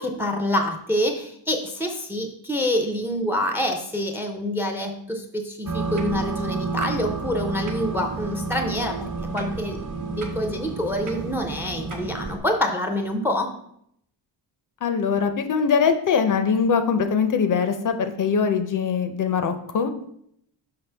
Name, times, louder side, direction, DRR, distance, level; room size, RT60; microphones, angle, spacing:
voice 1, 0.0-9.0 9.3-13.5, left 1 dB, 5° right, 5 dB, 0.4 m, -26 dB
sound 1, 5.7-12.4, right 4 dB, 45° right, 1.0 m, -30 dB
voice 2, 14.8-19.9, left 6 dB, 45° left, 8 dB, 0.5 m, -22 dB
5.8 x 5.6 x 3.3 m, 0.71 s
wide cardioid pair, 180°, 44 cm